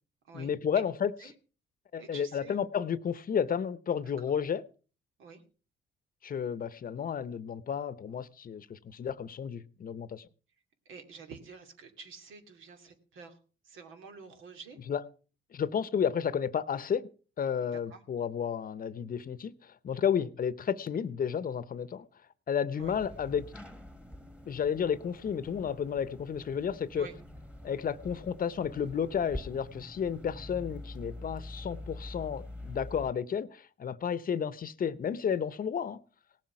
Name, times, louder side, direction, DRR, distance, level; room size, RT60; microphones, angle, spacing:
voice 1, 0.3-1.1 1.9-4.6 6.2-10.2 14.9-15.0 15.5-17.1 17.4-22.1 22.5-23.5 24.5-27.1 27.6-36.0, left 7 dB, 45° left, 0.8 m, -32 dB
voice 2, 2.0-2.6 5.2-5.4 10.9-13.4 13.6-14.8 17.6-18.0 22.7-22.9 26.9-27.1, right 5 dB, 80° right, 2.5 m, -49 dB
sound 1, 22.8-33.1, left 1 dB, 5° right, 1.6 m, -45 dB
18.0 x 7.6 x 5.9 m
cardioid pair, 90°, 20 cm